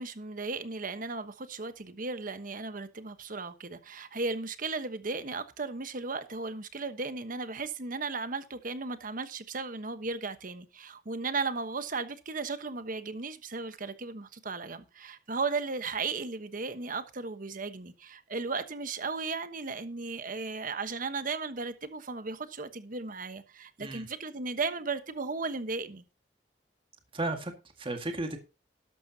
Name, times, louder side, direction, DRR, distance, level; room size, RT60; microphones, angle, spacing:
voice 1, 0.0-26.0, right 4 dB, 50° right, 1.2 m, -35 dB
voice 2, 27.1-28.4, right 2 dB, 30° right, 1.9 m, -34 dB
12.5 x 12.0 x 2.8 m
head